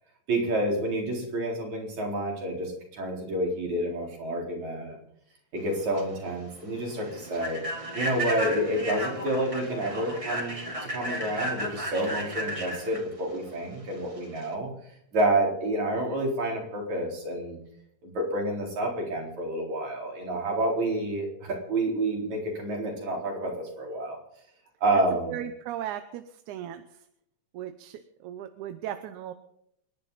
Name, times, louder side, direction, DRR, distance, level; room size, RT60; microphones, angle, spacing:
voice 1, 0.3-5.0 5.5-7.6 7.9-10.7 10.9-14.7 15.1-17.6 18.0-24.2 24.8-25.4, right 1 dB, 75° right, -1 dB, 5.5 m, -29 dB
Human voice / Train, 5.7-14.5, equal, 10° right, 2.7 m, -34 dB
voice 2, 25.3-27.1 27.5-29.3, right 11 dB, 90° right, 9 dB, 2.3 m, -37 dB
29.0 x 11.0 x 4.1 m, 0.75 s
omnidirectional pair, 3.3 m